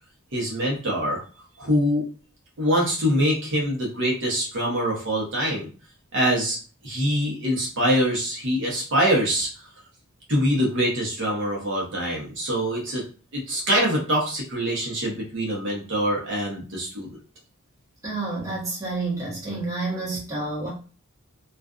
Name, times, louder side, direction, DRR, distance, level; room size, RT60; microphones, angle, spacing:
voice 1, 0.3-1.2 1.6-2.1 2.6-5.6 6.1-6.6 6.8-9.5 10.3-13.0 13.3-17.2, equal, 60° right, -2 dB, 0.9 m, -24 dB
voice 2, 18.0-20.7, right 3 dB, 15° right, -5 dB, 1.0 m, -29 dB
2.4 x 2.3 x 2.3 m, 0.37 s
head